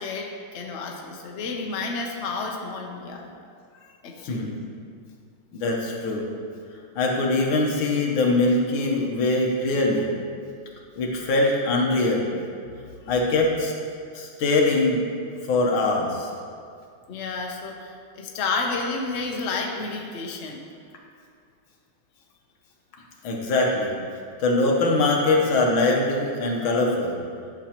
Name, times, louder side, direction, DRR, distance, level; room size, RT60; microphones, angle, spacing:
voice 1, 0.0-3.3 3.7-4.6 13.0-13.1 17.1-20.6, left 3 dB, 55° left, 1 dB, 0.8 m, -31 dB
voice 2, 5.5-6.3 7.0-10.1 11.0-12.3 13.1-13.7 14.1-15.0 15.4-16.3 23.2-24.0 24.4-27.2, left 2 dB, 90° left, -1 dB, 1.9 m, -22 dB
11.0 x 6.5 x 2.9 m, 2.3 s
omnidirectional pair, 2.2 m